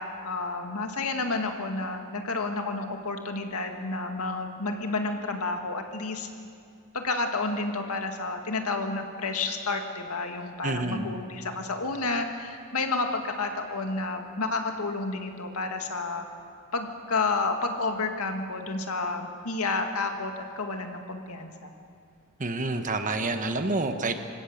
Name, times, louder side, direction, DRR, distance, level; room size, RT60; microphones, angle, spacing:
voice 1, 0.0-6.3 6.9-16.3 16.7-21.7, left 3 dB, 85° left, 4 dB, 2.0 m, -30 dB
voice 2, 10.6-11.1 22.4-24.2, right 2 dB, 35° right, 7 dB, 1.2 m, -28 dB
26.5 x 16.0 x 6.7 m, 2.3 s
head